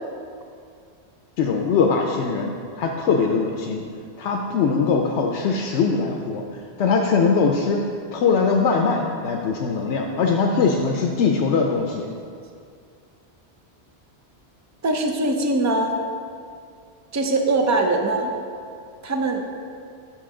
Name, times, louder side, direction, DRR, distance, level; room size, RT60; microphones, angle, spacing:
voice 1, 1.4-3.9 4.2-7.8 8.1-12.1, left 5 dB, 90° left, 1 dB, 0.9 m, -21 dB
voice 2, 14.8-16.0 17.1-18.3 19.0-19.4, right 2 dB, 20° right, 3 dB, 0.5 m, -22 dB
9.1 x 6.7 x 3.7 m, 2.3 s
omnidirectional pair, 1.1 m